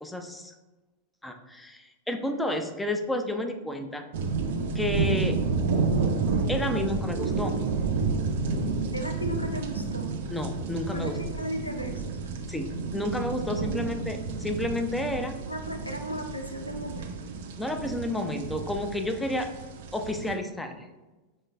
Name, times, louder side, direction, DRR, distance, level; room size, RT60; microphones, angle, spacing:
voice 1, 0.0-0.5 1.2-4.1 4.7-5.4 6.5-7.6 10.3-11.2 12.5-15.4 17.6-19.5 19.9-20.9, left 1 dB, 5° left, 5 dB, 0.4 m, -31 dB
sound 1, 4.1-20.3, right 4 dB, 55° right, 0.4 m, -30 dB
voice 2, 8.9-10.1 10.9-12.0 13.6-14.1 15.5-17.3, equal, 85° left, 4 dB, 0.5 m, -36 dB
5.4 x 3.1 x 2.3 m, 1.1 s
figure-of-eight pair, 90°, 0 cm